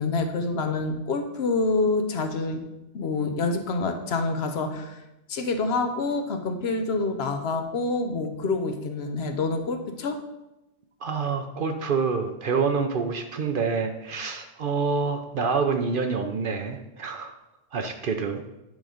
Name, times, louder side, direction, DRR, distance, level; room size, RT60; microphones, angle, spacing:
voice 1, 0.0-2.6 2.9-5.0 5.3-10.2, left 3 dB, 65° left, 6 dB, 0.9 m, -27 dB
voice 2, 11.0-17.3 17.7-18.4, right 5 dB, 55° right, 6 dB, 0.7 m, -27 dB
9.2 x 3.8 x 5.0 m, 0.95 s
omnidirectional pair, 1.2 m